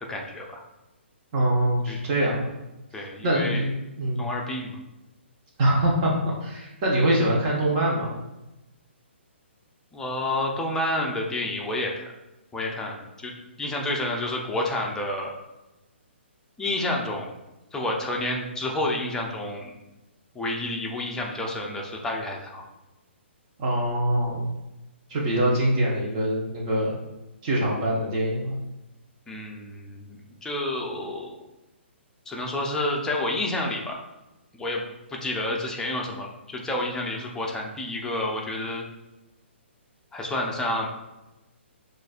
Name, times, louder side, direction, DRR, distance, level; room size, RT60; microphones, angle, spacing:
voice 1, 0.1-0.6 1.9-2.0 2.9-3.7 4.2-4.8 9.9-12.1 12.5-13.3 13.6-15.3 16.6-17.3 17.7-19.7 20.3-22.6 29.3-31.4 32.3-34.0 34.5-34.8 35.1-38.8 40.1-40.9, left 1 dB, 10° left, -1 dB, 0.6 m, -29 dB
voice 2, 1.3-2.5 3.2-4.2 5.6-8.1 23.6-24.5 25.1-27.0 27.4-28.6, right 1 dB, 35° right, -3 dB, 0.9 m, -24 dB
6.2 x 2.5 x 2.4 m, 0.98 s
figure-of-eight pair, 130°, 7 cm